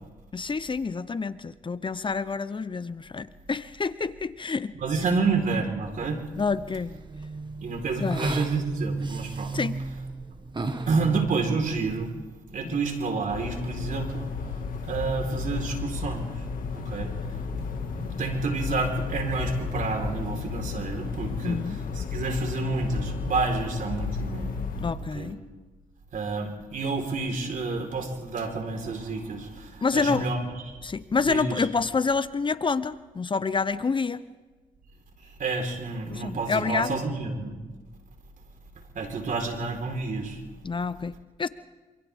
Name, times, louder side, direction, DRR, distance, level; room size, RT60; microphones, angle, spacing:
voice 1, 0.3-4.7 6.4-6.9 8.0-8.3 9.5-9.8 12.6-12.8 21.4-21.8 24.8-25.4 29.8-30.3 30.8-34.2 36.1-37.0 40.6-41.5, left 4 dB, 35° left, 14 dB, 0.8 m, -28 dB
voice 2, 4.7-6.2 7.6-9.5 10.9-12.1 12.5-14.3 14.9-16.3 16.9-17.1 17.9-21.6 22.0-24.4 25.1-25.3 26.1-29.5 29.9-30.4 31.3-31.6 35.4-37.6 39.0-40.3, right 4 dB, 70° right, 3 dB, 4.3 m, -29 dB
sound 1, 5.8-12.1, right 3 dB, 35° right, 1.8 m, -34 dB
sound 2, 13.3-25.0, left 5 dB, 75° left, 2.1 m, -33 dB
27.0 x 27.0 x 3.6 m, 1.3 s
cardioid pair, 60°, 14 cm